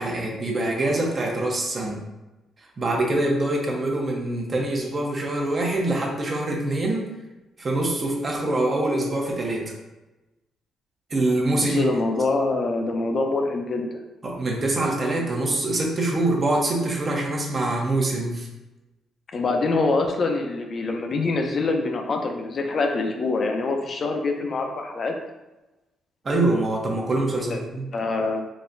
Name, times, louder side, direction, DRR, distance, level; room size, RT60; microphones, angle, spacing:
voice 1, 0.0-2.0 2.8-7.1 7.6-9.7 11.1-11.9 14.2-18.5 26.2-27.9, right 2 dB, 35° right, -1 dB, 0.7 m, -24 dB
voice 2, 11.6-14.0 19.3-25.2 27.3-27.6 27.9-28.4, left 3 dB, 45° left, 3 dB, 0.5 m, -25 dB
3.9 x 2.1 x 2.5 m, 1.0 s
cardioid pair, 90°, 0 cm